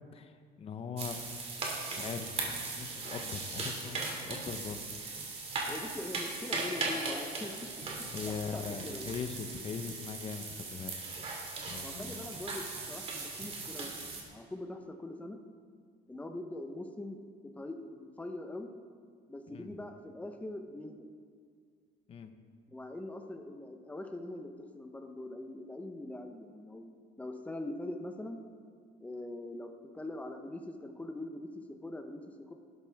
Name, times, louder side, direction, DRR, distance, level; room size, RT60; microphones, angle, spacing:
voice 1, 0.1-1.3 1.9-2.3 2.7-4.8 8.1-11.4 11.7-12.3 19.5-19.7 22.1-22.3, left 6 dB, 35° left, 8 dB, 0.9 m, -41 dB
sound 1, 1.0-14.2, right 3 dB, 35° right, 2.6 m, -38 dB
voice 2, 5.7-9.1 11.8-15.4 16.1-18.7 19.3-21.1 22.7-26.9 27.2-28.4 29.0-32.5, left 1 dB, 10° left, 5 dB, 1.0 m, -43 dB
18.0 x 12.5 x 3.6 m, 2.1 s
cardioid pair, 140°, 18 cm